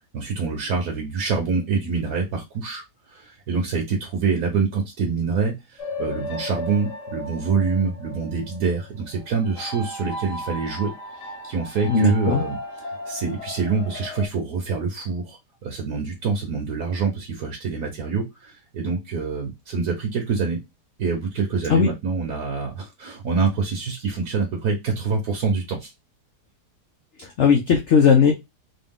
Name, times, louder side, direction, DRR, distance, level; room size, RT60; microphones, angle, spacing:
voice 1, 0.1-2.8 3.1-10.9 11.4-12.6 13.1-20.6 21.0-25.9, right 5 dB, 70° right, 1 dB, 1.4 m, -25 dB
sound 1, 5.8-14.3, left 1 dB, 80° left, 1.9 m, -35 dB
voice 2, 11.9-12.4 21.7-21.9 27.2-28.3, left 6 dB, 60° left, 2 dB, 0.8 m, -17 dB
3.8 x 2.4 x 3.6 m, 0.21 s
omnidirectional pair, 1.8 m